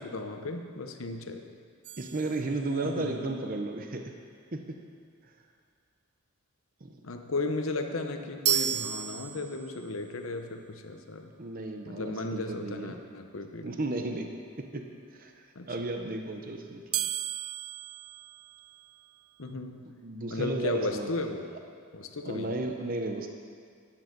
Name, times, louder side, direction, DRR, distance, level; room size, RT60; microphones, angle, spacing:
voice 1, 0.0-1.4 2.8-3.1 7.0-11.3 11.9-13.6 15.5-15.7 19.4-19.9 20.3-21.5 21.9-22.6, left 2 dB, 70° left, 6 dB, 1.0 m, -35 dB
sound 1, 1.8-3.1 8.4-9.9 16.9-19.1, right 11 dB, 85° right, 0.5 m, -33 dB
voice 2, 2.0-4.1 4.5-4.8 6.8-7.0 11.4-13.0 13.6-14.8 15.1-17.0 20.0-21.5 22.2-23.3, right 2 dB, 40° right, 4 dB, 0.8 m, -34 dB
12.5 x 10.5 x 5.3 m, 2.1 s
head